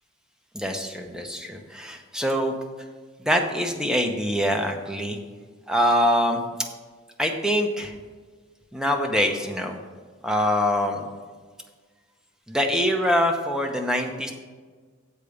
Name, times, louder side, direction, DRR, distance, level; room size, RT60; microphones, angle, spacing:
voice 1, 0.5-2.5 3.2-5.2 5.7-6.4 7.2-8.0 8.7-9.8 10.2-11.1 12.5-14.3, equal, 5° right, 3 dB, 0.8 m, -24 dB
7.4 x 5.0 x 6.9 m, 1.5 s
head